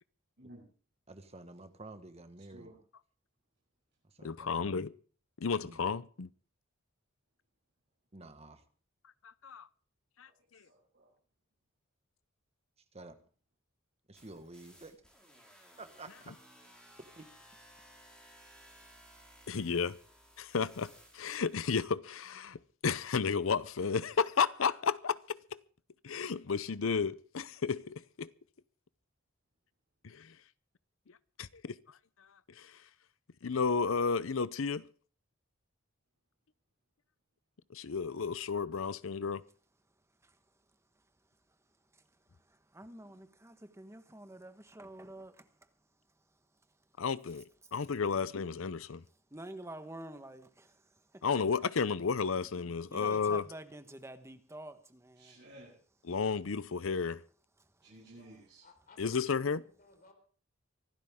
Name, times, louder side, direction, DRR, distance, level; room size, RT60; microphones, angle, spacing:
voice 1, 1.1-2.7 4.0-4.8 5.6-5.8 8.1-8.6 12.9-13.2 14.1-15.0 15.8-16.3 17.1-17.3, right 2 dB, 30° right, 1.5 m, -50 dB
voice 2, 4.2-4.9 5.4-6.3 9.4-9.7 10.2-10.3 19.5-20.0 20.4-25.6 26.0-28.3 30.0-30.3 31.4-31.8 32.6-32.8 33.4-34.9 37.7-39.4 47.0-49.0 51.2-53.4 56.1-57.2 59.0-59.6, left 5 dB, 70° left, 0.7 m, -32 dB
voice 3, 10.2-11.1 43.0-43.2 55.2-55.8 57.8-58.6, right 1 dB, 55° right, 7.6 m, -55 dB
sound 1, 14.1-21.8, equal, 5° left, 5.5 m, -59 dB
voice 4, 42.7-45.5 49.3-50.8 52.9-55.4, right 1 dB, 15° right, 1.3 m, -48 dB
voice 5, 58.6-60.1, left 2 dB, 40° left, 4.5 m, -56 dB
24.5 x 12.0 x 3.7 m
head